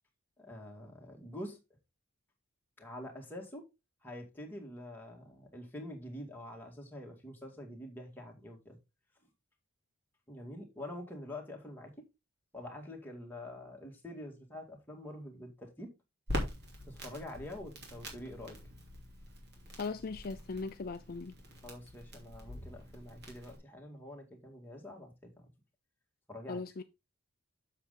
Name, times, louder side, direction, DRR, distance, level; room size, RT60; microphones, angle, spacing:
voice 1, 0.4-1.6 2.8-3.7 4.0-8.8 10.3-12.1 12.5-15.9 16.9-18.6 21.6-25.5 26.3-26.6, left 1 dB, 10° left, 2.0 m, -46 dB
Crackle, 16.3-23.6, equal, 50° right, 2.8 m, -43 dB
voice 2, 19.8-21.3 26.5-26.8, left 4 dB, 45° left, 0.4 m, -39 dB
7.5 x 6.7 x 3.7 m
head